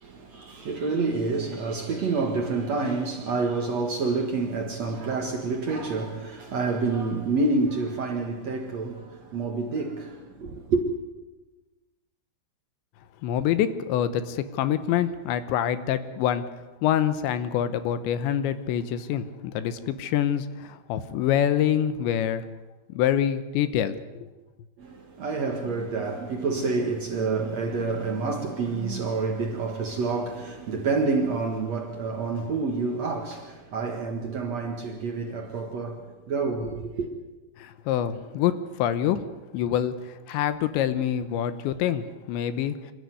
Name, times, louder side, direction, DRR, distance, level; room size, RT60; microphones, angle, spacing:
voice 1, 0.0-10.8 24.8-37.1, right 3 dB, 65° right, 1.6 m, -28 dB
voice 2, 13.2-16.4 16.8-22.4 22.9-24.3 37.6-39.2 39.5-42.8, left 10 dB, 75° left, 2.9 m, -26 dB
27.0 x 13.0 x 9.5 m
omnidirectional pair, 5.8 m